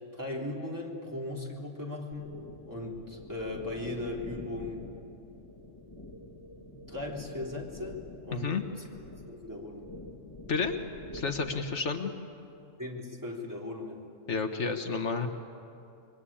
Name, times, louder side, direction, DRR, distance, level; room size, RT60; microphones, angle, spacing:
voice 1, 0.1-2.3 2.7-4.9 6.6-8.5 9.3-9.8 12.8-14.1, left 2 dB, 15° right, -2 dB, 3.5 m, -38 dB
sound 1, 2.1-11.8, left 1 dB, 20° left, 2.0 m, -47 dB
voice 2, 8.3-8.6 10.5-10.7 11.1-12.1 14.3-15.3, left 4 dB, 70° left, 5 dB, 1.6 m, -30 dB
27.0 x 23.0 x 8.7 m, 2.6 s
omnidirectional pair, 1.3 m